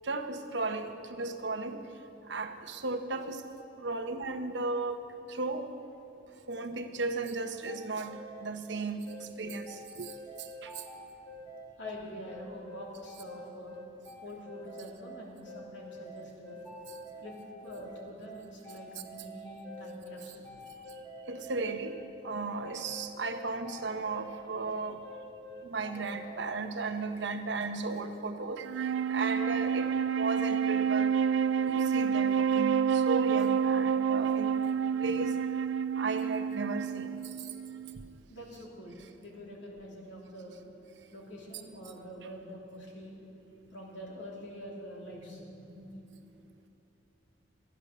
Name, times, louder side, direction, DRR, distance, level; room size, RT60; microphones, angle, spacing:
voice 1, 0.0-1.8 2.3-3.4 3.8-5.0 5.3-5.7 6.5-10.1 10.6-10.7 21.3-21.9 22.2-25.0 25.6-28.6 29.1-29.9 30.2-31.2 31.6-34.6 35.0-35.3 36.0-37.2, right 3 dB, 70° right, 6 dB, 0.9 m, -35 dB
sound 1, 7.7-26.5, equal, 20° left, 1.4 m, -47 dB
voice 2, 11.8-13.8 14.2-16.6 17.2-17.4 17.6-20.5 38.3-40.6 41.1-43.2 43.7-45.9, equal, 80° left, -3 dB, 2.9 m, -45 dB
Wind instrument woodwind instrument, 28.6-38.1, right 7 dB, 90° right, 0.3 m, -29 dB
14.0 x 9.8 x 6.6 m, 2.8 s
head